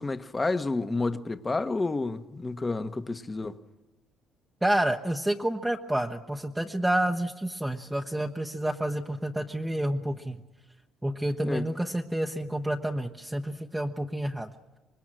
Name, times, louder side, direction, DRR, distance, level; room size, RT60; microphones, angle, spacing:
voice 1, 0.0-3.6 11.4-11.6, left 3 dB, 25° left, 1.0 m, -30 dB
voice 2, 4.6-10.4 11.0-14.5, right 1 dB, 10° right, 0.9 m, -29 dB
25.0 x 20.0 x 7.6 m
cardioid pair, 90°, 0 cm